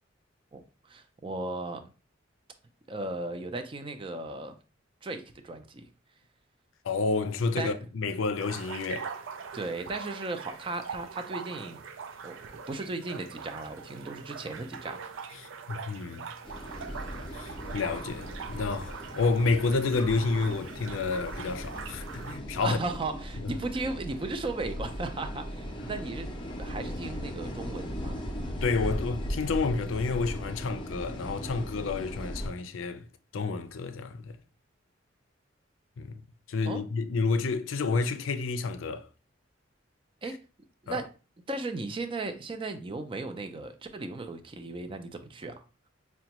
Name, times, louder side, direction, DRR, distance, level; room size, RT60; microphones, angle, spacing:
voice 1, 0.5-1.9 2.9-4.6 5.0-5.9 7.6-7.8 9.5-11.8 12.2-15.0 22.6-26.3 26.6-28.2 36.7-36.8 40.2-40.4 40.8-41.1 41.5-45.6, right 2 dB, 25° right, 0.4 m, -36 dB
voice 2, 6.8-9.1 15.4-16.2 17.3-22.8 23.4-23.5 28.6-33.1 33.3-34.4 36.0-36.1 36.5-39.1 40.9-41.0, left 4 dB, 90° left, 0.4 m, -30 dB
sound 1, 8.4-22.4, right 6 dB, 85° right, 0.4 m, -42 dB
sound 2, 16.4-32.5, equal, 25° left, 0.6 m, -38 dB
4.9 x 2.2 x 2.8 m
head